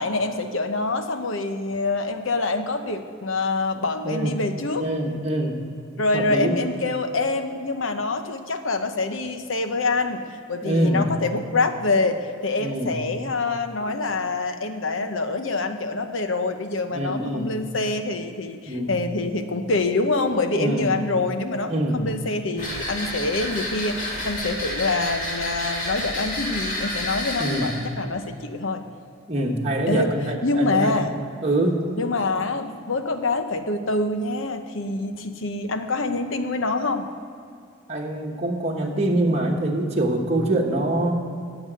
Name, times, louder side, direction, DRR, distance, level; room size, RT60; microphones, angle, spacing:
voice 1, 0.0-4.9 6.0-10.2 10.5-28.8 29.9-30.1 30.4-31.1 32.0-37.1, left 3 dB, 75° left, 7 dB, 1.0 m, -25 dB
voice 2, 4.7-5.6 6.1-6.6 10.6-11.1 12.6-12.9 16.9-17.5 18.7-18.9 20.5-20.9 21.7-22.0 27.4-27.7 29.3-31.0 31.4-31.8 37.9-41.2, right 1 dB, 30° right, -2 dB, 1.2 m, -24 dB
sound 1, 22.6-27.8, left 1 dB, 40° left, 3.0 m, -30 dB
10.0 x 7.2 x 9.2 m, 2.4 s
head